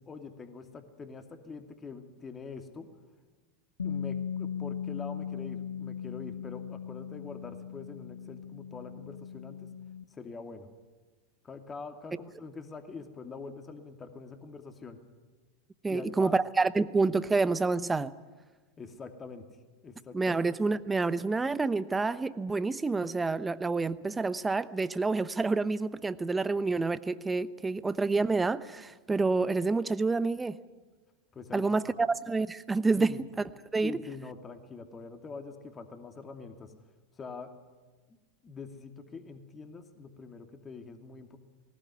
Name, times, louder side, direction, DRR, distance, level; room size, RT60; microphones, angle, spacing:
voice 1, 0.0-2.9 3.8-9.7 10.1-10.7 11.4-15.0 15.9-16.4 18.8-19.5 19.8-20.3 31.3-31.8 33.0-33.2 33.8-36.7 37.2-37.5 38.4-41.4, left 4 dB, 25° left, 6 dB, 2.5 m, -44 dB
Bass guitar, 3.8-10.0, left 8 dB, 85° left, 0.8 m, -38 dB
voice 2, 15.8-18.1 20.1-30.6 31.5-33.3 33.7-34.0, right 3 dB, 15° right, 15 dB, 0.9 m, -28 dB
19.5 x 19.0 x 9.7 m, 1.3 s
hypercardioid pair, 90°, 0 cm